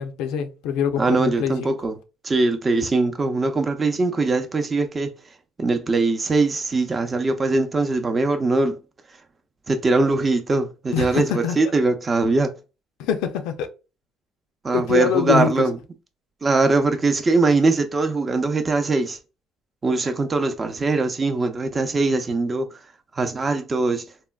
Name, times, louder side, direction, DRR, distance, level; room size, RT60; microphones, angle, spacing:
voice 1, 0.0-1.7 10.9-11.6 13.0-13.7 14.7-15.7, left 8 dB, 80° left, 0.4 m, -24 dB
voice 2, 1.0-2.0 2.2-5.1 5.6-8.8 9.7-12.5 14.6-15.8 16.4-19.2 19.8-22.7 23.1-24.0, right 3 dB, 30° right, 0.6 m, -21 dB
3.6 x 2.1 x 2.3 m
supercardioid pair, 90°, 0 cm